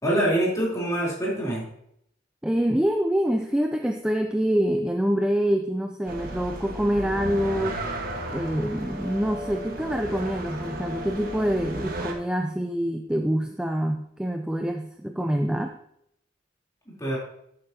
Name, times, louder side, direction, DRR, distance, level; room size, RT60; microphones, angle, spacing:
voice 1, 0.0-1.7 16.9-17.2, right 1 dB, 15° left, -5 dB, 3.6 m, -25 dB
voice 2, 2.4-7.8 8.3-15.8, equal, 5° right, 4 dB, 0.4 m, -26 dB
sound 1, 6.1-12.1, right 1 dB, 50° right, 1.4 m, -34 dB
11.5 x 8.7 x 2.8 m, 0.74 s
head